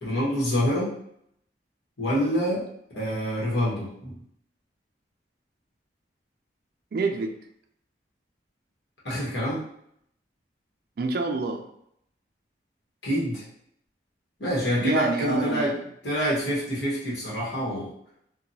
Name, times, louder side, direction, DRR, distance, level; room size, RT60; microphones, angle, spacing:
voice 1, 0.0-0.9 2.0-2.6 2.9-4.2 9.0-9.6 13.0-13.4 14.4-15.7 16.0-17.9, equal, 75° left, -6 dB, 1.1 m, -26 dB
voice 2, 6.9-7.4 11.0-11.6 14.8-15.7, right 3 dB, 55° right, 4 dB, 0.3 m, -26 dB
2.8 x 2.2 x 2.7 m, 0.71 s
head